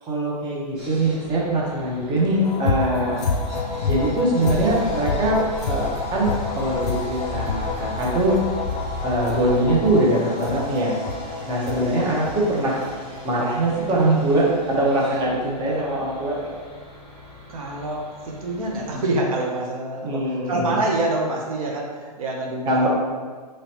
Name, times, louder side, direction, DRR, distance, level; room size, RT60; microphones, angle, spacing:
voice 1, 0.0-3.2 3.8-5.4 5.6-8.4 9.0-10.9 11.5-12.8 13.2-16.5 20.0-20.8 22.7-22.9, right 1 dB, 20° right, -4 dB, 0.9 m, -22 dB
Sawing, 0.7-19.0, equal, 35° right, 1.4 m, -42 dB
sound 1, 2.4-15.5 15.9-16.0 16.4-16.5, left 4 dB, 65° left, 0.5 m, -29 dB
sound 2, 4.4-9.8, left 3 dB, 5° left, 1.1 m, -33 dB
voice 2, 17.5-22.9, right 2 dB, 55° right, -2 dB, 0.8 m, -26 dB
4.1 x 3.2 x 2.8 m, 1.5 s
figure-of-eight pair, 120°, 21 cm